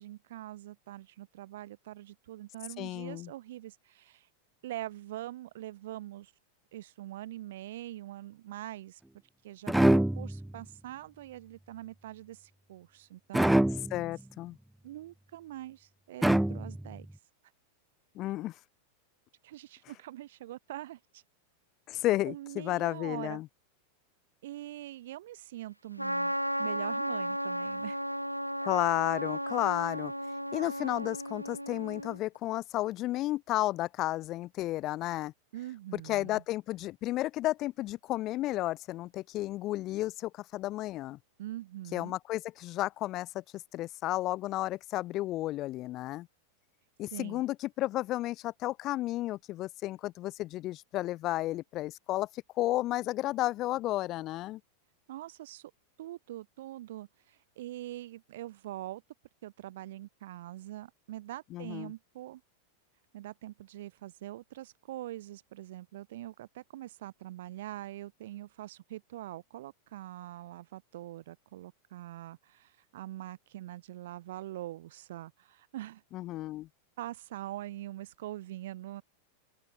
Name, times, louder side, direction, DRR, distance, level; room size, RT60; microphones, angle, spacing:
voice 1, 0.0-4.3 4.6-6.3 6.7-9.0 9.4-13.5 14.8-17.1 19.4-21.2 22.2-23.4 24.4-28.0 35.5-36.4 41.4-42.1 47.1-47.4 55.1-55.7 56.0-59.0 59.4-62.4 63.1-76.0 77.0-79.0, right 14 dB, 55° right, 1.3 m, -43 dB
voice 2, 2.8-3.3 13.9-14.6 18.1-18.6 21.9-23.5 28.6-30.1 30.5-35.3 35.9-41.2 41.9-46.3 47.0-54.6 61.5-61.9 76.1-76.7, left 16 dB, 35° left, 1.1 m, -32 dB
sound 1, 9.7-10.6 13.3-14.1 16.2-17.0, right 1 dB, 5° right, 0.5 m, -25 dB
Trumpet, 26.0-32.2, equal, 90° right, 0.5 m, -34 dB
open air
figure-of-eight pair, 90°, 0 cm